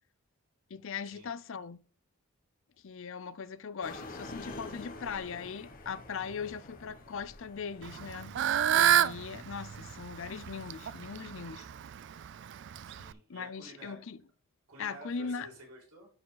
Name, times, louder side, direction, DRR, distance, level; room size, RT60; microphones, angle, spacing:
voice 1, 0.7-1.8 2.8-8.4 8.7-11.7 13.3-14.2 14.8-15.5, left 6 dB, 60° left, 0.5 m, -40 dB
sound 1, 3.8-13.0, left 2 dB, 40° left, 1.3 m, -49 dB
Fowl / Bird, 7.8-13.1, right 10 dB, 50° right, 0.3 m, -30 dB
voice 2, 12.7-14.0 14.7-16.1, right 1 dB, 85° right, 4.7 m, -51 dB
10.5 x 5.0 x 3.9 m
head